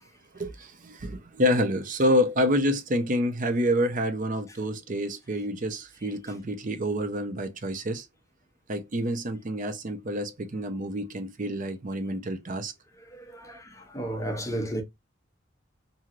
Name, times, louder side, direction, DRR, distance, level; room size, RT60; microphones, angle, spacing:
voice 1, 0.3-8.1 8.7-12.7, equal, 40° right, 0.6 m, -28 dB
voice 2, 13.1-14.8, right 1 dB, 15° left, 0.7 m, -33 dB
3.0 x 2.7 x 2.4 m
head